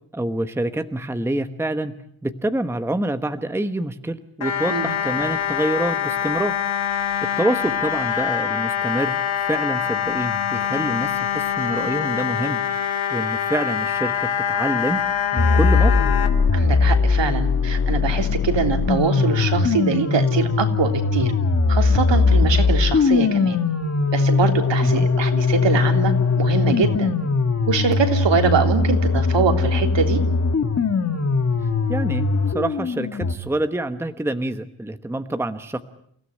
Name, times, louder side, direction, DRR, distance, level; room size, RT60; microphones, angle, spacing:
voice 1, 0.1-1.9 2.2-6.5 7.4-12.6 13.1-15.0 15.3-15.9 24.8-25.1 31.9-35.8, right 1 dB, 5° right, 9 dB, 1.1 m, -26 dB
sound 1, 4.4-16.3, left 8 dB, 75° left, 3.0 m, -24 dB
sound 2, 15.4-33.4, left 4 dB, 30° left, 1.6 m, -20 dB
voice 2, 16.5-21.3 21.7-23.6 24.1-27.1 27.7-30.2, right 6 dB, 65° right, 5 dB, 3.4 m, -23 dB
29.5 x 16.5 x 9.9 m, 0.67 s
wide cardioid pair, 160°, 48 cm